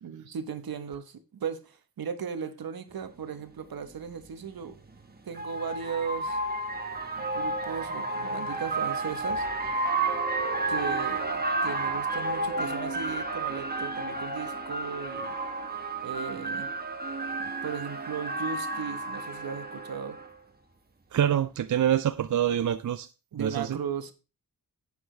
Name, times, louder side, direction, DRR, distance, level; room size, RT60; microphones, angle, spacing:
voice 1, 0.0-4.8 5.3-6.4 7.2-9.5 10.7-15.4 16.0-16.7 17.4-20.2 23.3-24.1, right 7 dB, 80° right, 1.2 m, -36 dB
sound 1, 3.2-3.3 4.7-20.3, right 2 dB, 25° right, 1.4 m, -31 dB
voice 2, 21.1-23.1 23.4-23.8, right 10 dB, 55° right, 0.5 m, -26 dB
11.5 x 8.6 x 3.3 m
wide cardioid pair, 100°, 36 cm